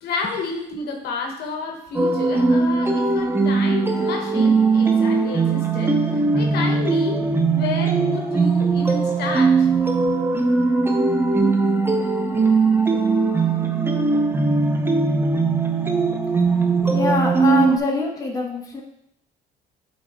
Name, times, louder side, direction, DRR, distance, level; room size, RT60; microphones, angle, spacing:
voice 1, 0.0-5.9 6.3-9.7, left 3 dB, 70° left, 1 dB, 1.3 m, -30 dB
sound 1, 1.9-17.8, right 4 dB, 15° right, 0.7 m, -19 dB
voice 2, 16.5-18.8, left 4 dB, 20° left, -1 dB, 1.4 m, -24 dB
8.4 x 4.0 x 3.5 m, 0.74 s
cardioid pair, 110°, 17 cm